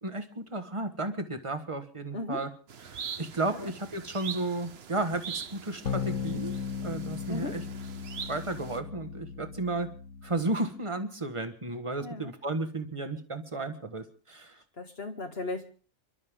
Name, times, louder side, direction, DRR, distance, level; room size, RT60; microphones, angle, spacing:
voice 1, 0.0-2.5 2.8-6.5 6.8-7.6 8.3-9.9 10.2-14.6, right 2 dB, 25° right, 8 dB, 1.6 m, -33 dB
sound 1, 2.7-8.8, right 7 dB, 55° right, 1.1 m, -43 dB
sound 2, 5.8-10.6, left 6 dB, 75° left, 1.5 m, -36 dB
voice 2, 7.3-7.6 12.0-12.3 14.8-15.7, left 2 dB, 50° left, 4 dB, 2.0 m, -36 dB
30.0 x 12.0 x 3.7 m, 0.40 s
omnidirectional pair, 1.3 m